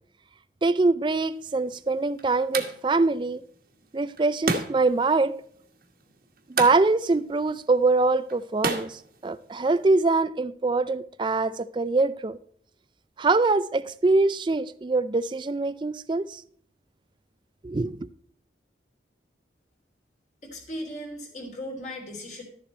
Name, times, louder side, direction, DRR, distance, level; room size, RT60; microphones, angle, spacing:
voice 1, 0.6-3.4 3.9-5.3 6.5-12.4 13.2-16.4 17.6-18.1, right 3 dB, 25° right, 0.4 m, -24 dB
sound 1, 1.3-9.8, right 3 dB, 50° right, 1.4 m, -35 dB
voice 2, 20.4-22.4, equal, 40° left, 3.1 m, -37 dB
12.5 x 7.3 x 4.4 m
head